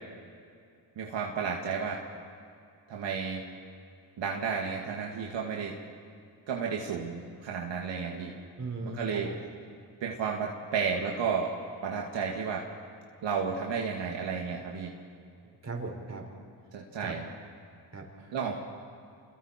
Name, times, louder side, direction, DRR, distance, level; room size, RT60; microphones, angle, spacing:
voice 1, 1.0-2.0 2.9-3.4 4.2-5.7 6.5-8.3 9.0-9.3 10.0-11.5 11.8-12.6 13.2-14.9 16.7-17.3 18.3-18.5, right 6 dB, 70° right, -1 dB, 2.3 m, -32 dB
voice 2, 8.6-9.4 15.4-16.2 17.0-17.1 17.9-18.4, right 3 dB, 35° right, 1 dB, 5.0 m, -38 dB
28.0 x 22.0 x 4.5 m, 2.5 s
supercardioid pair, 65°, 45 cm